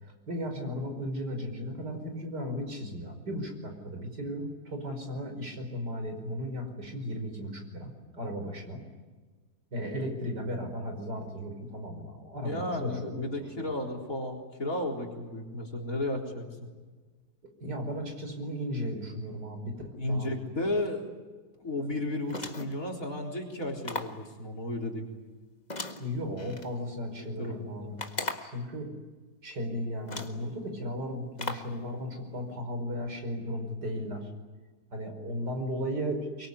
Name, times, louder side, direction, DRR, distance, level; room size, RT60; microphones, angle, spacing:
voice 1, 0.0-8.8 9.7-13.7 17.6-19.7 20.1-20.3 26.0-28.0 28.4-28.9 29.4-34.3 34.9-36.5, equal, 80° right, 4 dB, 5.7 m, -35 dB
voice 2, 12.4-16.5 20.0-21.0 21.6-25.1 27.2-27.9, left 1 dB, 55° left, 0 dB, 4.3 m, -33 dB
sound 1, 22.3-22.8 23.8-24.2 25.7-26.7 28.0-28.6 29.5-29.6 30.1-30.4 31.4-31.8, left 2 dB, 25° left, 1.7 m, -37 dB
24.0 x 23.5 x 9.8 m, 1.4 s
omnidirectional pair, 1.8 m